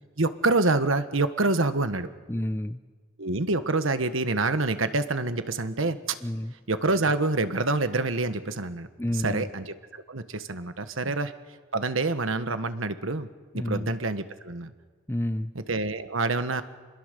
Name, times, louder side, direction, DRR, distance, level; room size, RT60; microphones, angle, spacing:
voice 1, 0.2-2.1 3.2-6.2 6.7-8.9 9.1-11.3 11.7-13.3 13.5-14.7 15.5-16.6, right 3 dB, 80° right, 10 dB, 1.3 m, -27 dB
voice 2, 2.3-2.8 6.2-6.5 9.0-9.5 11.0-11.1 13.5-13.9 15.1-15.5, left 1 dB, 10° left, 12 dB, 0.6 m, -29 dB
27.5 x 21.5 x 6.7 m, 1.5 s
head